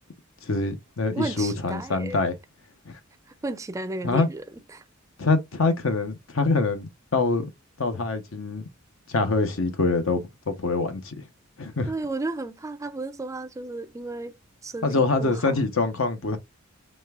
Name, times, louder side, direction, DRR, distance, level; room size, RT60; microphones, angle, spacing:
voice 1, 0.4-2.3 2.9-3.0 4.0-4.3 5.2-7.5 7.8-8.6 9.1-11.2 11.6-11.9 14.8-16.4, left 3 dB, 70° left, 0.9 m, -25 dB
voice 2, 1.1-2.2 3.4-4.8 11.9-14.4 14.6-15.5, right 2 dB, 15° right, 0.4 m, -33 dB
5.1 x 3.3 x 2.4 m
head